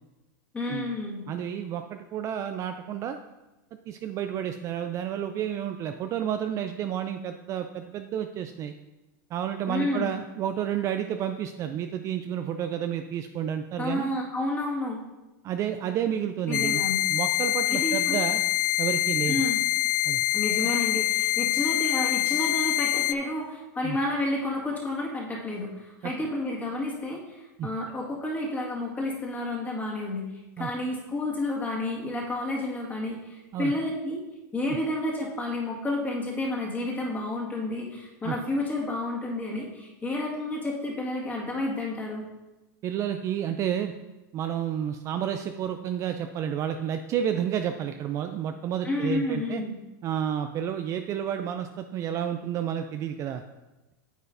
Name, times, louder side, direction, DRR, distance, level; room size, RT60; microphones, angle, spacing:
voice 1, 0.5-1.3 9.7-10.2 13.8-15.0 16.5-17.0 17.7-18.2 19.3-19.6 20.3-34.2 34.5-42.3 48.8-49.8, left 2 dB, 15° left, -3 dB, 1.8 m, -30 dB
voice 2, 1.3-3.2 3.9-8.7 9.3-14.1 15.4-16.8 17.1-18.4 18.8-19.4 20.1-20.2 23.8-24.0 26.0-26.1 27.6-27.7 30.6-30.7 33.5-33.7 34.7-34.8 38.2-38.4 42.8-43.9 44.3-49.6 50.0-53.4, right 9 dB, 30° right, 7 dB, 0.3 m, -30 dB
sound 1, 16.5-23.1, left 15 dB, 90° left, 0.4 m, -25 dB
9.3 x 7.9 x 2.6 m, 1.1 s
supercardioid pair, 140°, 11 cm